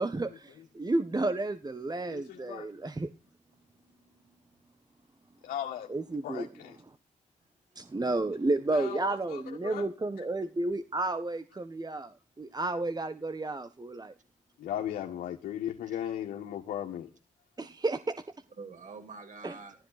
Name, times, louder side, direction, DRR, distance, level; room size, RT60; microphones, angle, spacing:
voice 1, 0.0-3.1 5.9-6.5 7.7-14.1 17.6-18.2 19.4-19.5, right 2 dB, 30° right, 1.5 m, -32 dB
voice 2, 2.1-2.7 5.4-5.9 6.2-6.8 8.7-9.9 14.6-17.1, left 10 dB, 85° left, 1.8 m, -37 dB
voice 3, 3.5-4.4 7.4-7.9 12.5-12.6 15.9-16.0 18.6-19.8, right 4 dB, 65° right, 7.6 m, -49 dB
15.0 x 13.5 x 4.2 m
supercardioid pair, 45°, 14 cm